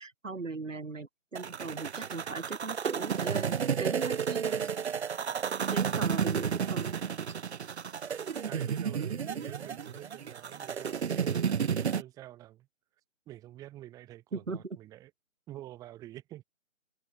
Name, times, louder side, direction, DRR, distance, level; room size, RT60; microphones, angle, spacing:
voice 1, 0.0-4.8 5.7-7.0 14.3-14.6, right 3 dB, 70° right, 4.0 m, -39 dB
sound 1, 1.4-12.0, right 7 dB, 55° right, 0.6 m, -32 dB
voice 2, 8.5-12.7 13.3-15.1 15.5-16.4, right 14 dB, 10° right, 2.4 m, -47 dB
open air
figure-of-eight pair, 150°, 39 cm